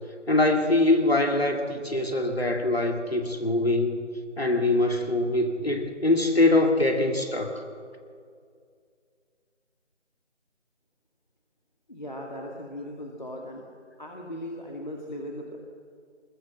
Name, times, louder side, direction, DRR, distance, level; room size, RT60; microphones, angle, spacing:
voice 1, 0.3-4.0 4.4-7.6, left 2 dB, 55° left, 4 dB, 2.1 m, -23 dB
voice 2, 11.9-13.6 14.0-15.6, left 1 dB, 40° left, 0 dB, 2.0 m, -38 dB
20.5 x 20.0 x 7.6 m, 2.3 s
figure-of-eight pair, 175°, 36 cm